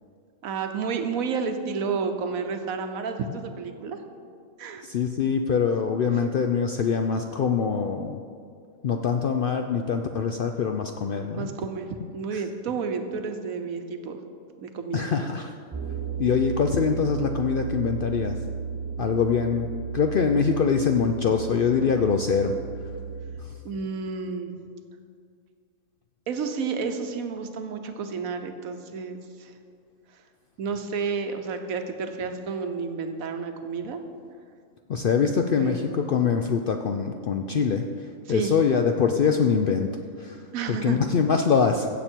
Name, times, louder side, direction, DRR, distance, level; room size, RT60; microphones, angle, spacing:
voice 1, 0.4-4.0 4.6-4.8 11.4-14.2 14.6-15.1 23.6-24.5 26.3-29.5 30.1-30.2 30.6-34.0 35.6-36.2 38.3-38.5 40.5-41.0, right 5 dB, 80° right, 7 dB, 1.3 m, -31 dB
voice 2, 4.8-8.2 8.8-11.5 12.0-12.4 14.9-15.5 16.2-18.4 19.0-19.7 19.9-22.5 23.4-23.5 34.9-39.9 40.2-40.4 40.7-41.9, left 6 dB, 65° left, 5 dB, 0.5 m, -24 dB
sound 1, 15.7-23.4, right 6 dB, 30° right, 0.4 m, -34 dB
15.5 x 7.2 x 4.5 m, 2.2 s
omnidirectional pair, 1.4 m